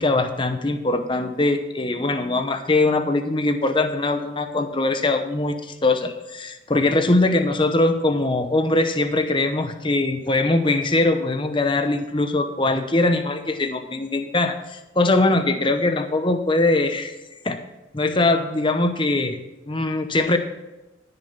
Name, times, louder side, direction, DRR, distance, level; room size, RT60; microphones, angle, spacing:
voice 1, 0.0-17.2 17.4-17.6 17.9-19.4 19.7-20.4, left 2 dB, 25° left, 7 dB, 0.8 m, -21 dB
14.0 x 6.8 x 5.8 m, 1.0 s
head